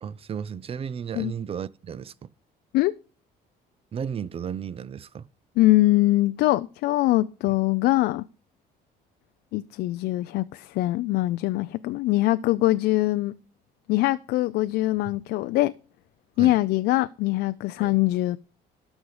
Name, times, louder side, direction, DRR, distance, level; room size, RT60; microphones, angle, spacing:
voice 1, 0.0-2.3 3.9-5.3 7.5-7.6 16.4-16.6 17.8-18.0, right 7 dB, 35° right, 0.5 m, -34 dB
voice 2, 5.6-8.2 9.5-13.3 13.9-15.7 16.4-18.4, left 17 dB, 80° left, 0.4 m, -23 dB
12.5 x 5.2 x 4.8 m
cardioid pair, 110°, 17 cm